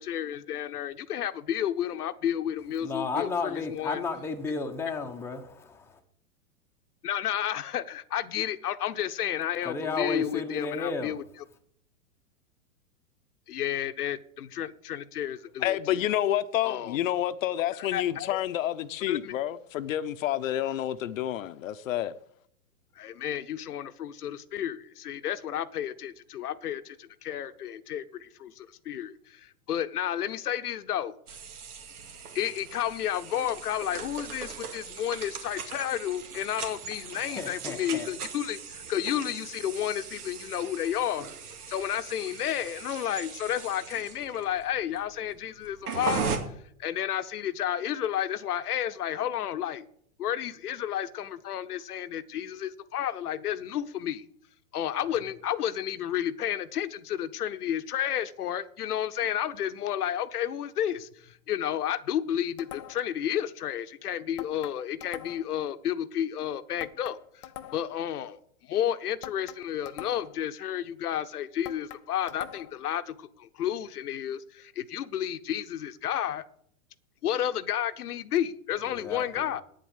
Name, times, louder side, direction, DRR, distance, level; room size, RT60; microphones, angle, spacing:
voice 1, 0.0-4.0 7.0-11.2 13.5-16.0 16.6-17.0 17.6-18.4 19.1-19.3 23.0-31.2 32.3-41.3 41.7-49.9 50.2-54.2 54.7-76.4 77.2-79.6, left 10 dB, 85° left, 0.9 m, -31 dB
voice 2, 2.8-6.0 9.6-11.1 37.2-38.1 78.9-79.4, left 4 dB, 5° left, 0.9 m, -33 dB
voice 3, 15.6-22.1, left 12 dB, 60° left, 0.8 m, -29 dB
sound 1, 31.3-46.4, right 6 dB, 85° right, 2.3 m, -39 dB
sound 2, 62.6-63.2 64.4-65.6 66.8-68.0 69.2-70.4 71.6-72.9, left 12 dB, 25° left, 0.3 m, -44 dB
9.1 x 7.6 x 7.2 m
hypercardioid pair, 140°, 44 cm